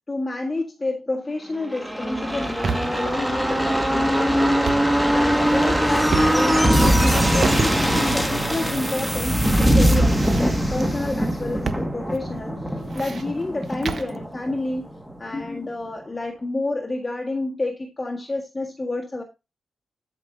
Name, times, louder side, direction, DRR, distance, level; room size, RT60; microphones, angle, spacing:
voice 1, 0.1-4.4 5.1-14.8 15.2-19.2, left 2 dB, 20° left, 1.6 m, -29 dB
sound 1, 1.6-15.1 15.4-15.5, equal, ahead, 1.8 m, -21 dB
sound 2, 2.3-3.1 4.5-5.0 5.5-6.7 7.0-8.3 9.0-9.6 9.8-10.9 11.7-11.9 12.1-12.2 12.7-14.2, right 5 dB, 50° right, 1.0 m, -31 dB
12.0 x 5.2 x 3.8 m
wide cardioid pair, 125°, 0 cm